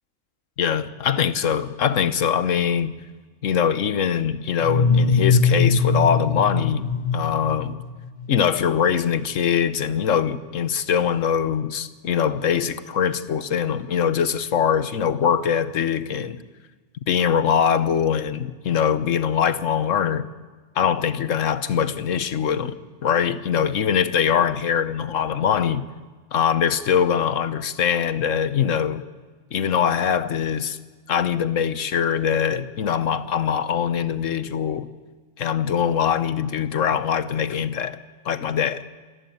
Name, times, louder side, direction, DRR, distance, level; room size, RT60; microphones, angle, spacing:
voice 1, 0.6-3.0 3.4-7.8 8.3-16.4 17.1-20.3 20.7-22.8 23.0-25.9 26.3-29.0 29.5-30.8 31.1-34.9 35.4-38.0 38.2-38.8, left 8 dB, 75° left, 14 dB, 1.4 m, -22 dB
sound 1, 4.6-8.3, left 4 dB, 40° left, 1.1 m, -21 dB
27.5 x 14.5 x 9.3 m, 1.4 s
omnidirectional pair, 1.3 m